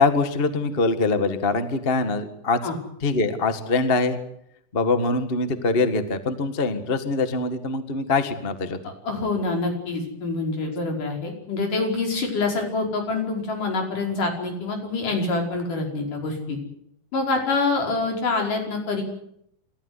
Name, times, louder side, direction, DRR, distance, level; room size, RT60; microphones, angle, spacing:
voice 1, 0.0-2.6 3.0-4.2 4.7-8.8, left 3 dB, 30° left, 9 dB, 1.0 m, -23 dB
voice 2, 8.8-16.6 17.1-19.0, left 3 dB, 65° left, 2 dB, 6.6 m, -26 dB
28.5 x 14.0 x 9.8 m, 0.74 s
omnidirectional pair, 3.9 m